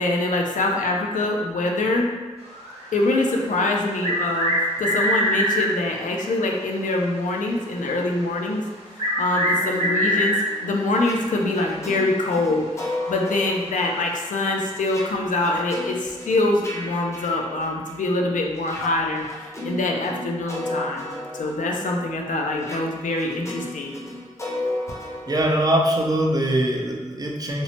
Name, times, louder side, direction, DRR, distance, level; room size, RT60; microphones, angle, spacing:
voice 1, 0.0-2.1 2.9-8.6 9.2-10.4 10.6-23.9, left 2 dB, 90° left, 0 dB, 0.4 m, -24 dB
sound 1, 2.5-5.8 8.2-8.3 9.0-10.7 12.3-12.4 12.8-12.9 14.6-14.7, equal, 55° right, 0.8 m, -24 dB
sound 2, 9.3-18.1 18.6-26.4, left 1 dB, 20° left, 0.6 m, -35 dB
voice 2, 25.3-27.6, right 1 dB, 30° right, 0 dB, 0.4 m, -22 dB
3.0 x 2.0 x 2.7 m, 1.3 s
wide cardioid pair, 55°, 13 cm